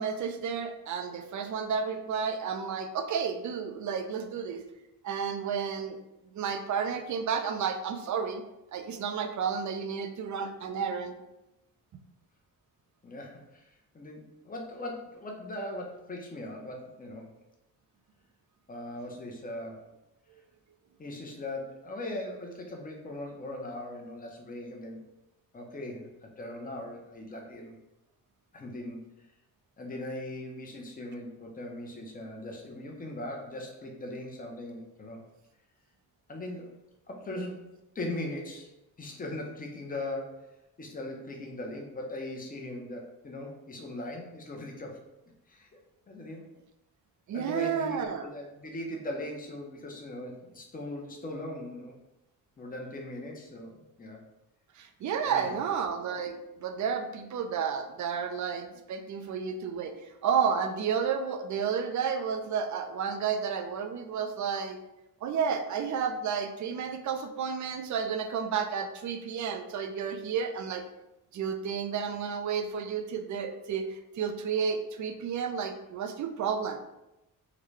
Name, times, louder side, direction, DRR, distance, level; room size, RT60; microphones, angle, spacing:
voice 1, 0.0-4.6 5.0-6.0 6.3-8.4 8.7-11.2 47.3-48.3 54.8-59.9 60.2-64.8 65.2-70.8 71.3-76.8, right 6 dB, 55° right, 7 dB, 0.5 m, -31 dB
voice 2, 13.0-17.3 18.7-19.8 21.0-25.0 25.5-27.8 28.5-29.1 29.8-35.2 36.3-36.7 37.1-37.6 37.9-38.7 39.0-40.5 40.8-45.0 45.5-45.7 46.1-46.4 47.3-51.9 52.6-54.2 55.3-55.5, left 1 dB, 25° left, 0 dB, 0.7 m, -39 dB
3.8 x 2.2 x 3.1 m, 0.92 s
cardioid pair, 125°, 35 cm